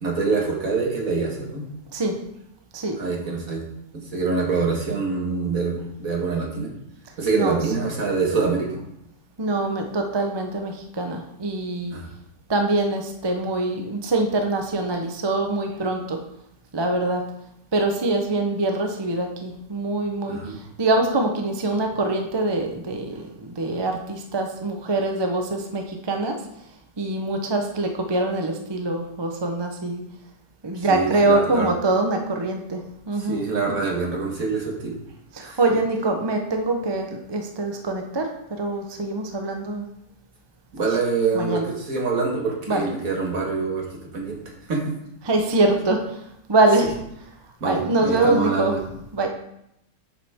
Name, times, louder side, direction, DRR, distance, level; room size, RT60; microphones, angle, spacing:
voice 1, 0.0-1.6 3.0-3.6 3.9-6.7 7.2-8.8 11.9-12.1 20.3-20.6 30.7-31.7 33.2-35.0 35.4-35.6 40.7-43.9 44.1-44.9 47.6-48.8, right 4 dB, 50° right, -1 dB, 2.1 m, -25 dB
voice 2, 9.4-12.0 12.5-16.2 16.7-17.2 17.7-26.4 27.0-30.0 30.6-33.4 35.3-38.3 38.6-39.9 40.8-40.9 41.3-41.7 42.7-42.9 45.2-46.2 46.5-47.0 47.6-48.8 49.1-49.3, right 2 dB, 35° right, 3 dB, 0.4 m, -24 dB
8.4 x 7.1 x 3.6 m, 0.78 s
omnidirectional pair, 1.9 m